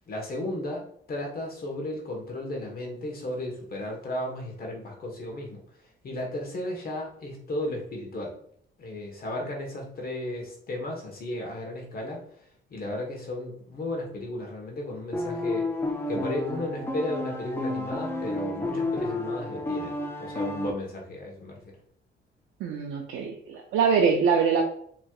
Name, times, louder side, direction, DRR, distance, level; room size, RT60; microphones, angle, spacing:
voice 1, 0.1-8.4 8.8-15.7 16.1-21.6, left 1 dB, 50° left, 0 dB, 1.2 m, -34 dB
sound 1, 15.1-20.7, left 1 dB, 10° left, 0.6 m, -31 dB
voice 2, 22.6-24.6, right 6 dB, 80° right, 1 dB, 0.6 m, -23 dB
4.5 x 3.2 x 2.4 m, 0.62 s
cardioid pair, 90°, 20 cm